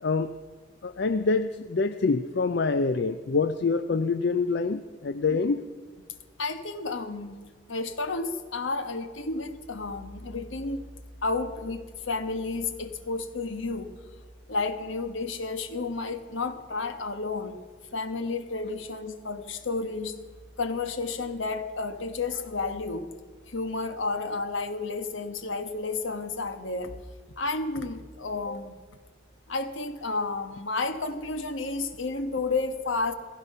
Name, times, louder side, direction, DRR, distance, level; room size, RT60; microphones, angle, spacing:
voice 1, 0.8-5.6, left 4 dB, 55° left, 10 dB, 0.5 m, -26 dB
voice 2, 6.4-7.4 7.7-10.8 11.2-13.9 14.5-17.6 17.9-20.2 20.6-23.1 23.5-26.9 27.4-28.8 29.5-33.1, left 3 dB, 75° left, 9 dB, 1.2 m, -31 dB
16.5 x 15.5 x 5.5 m, 1.5 s
head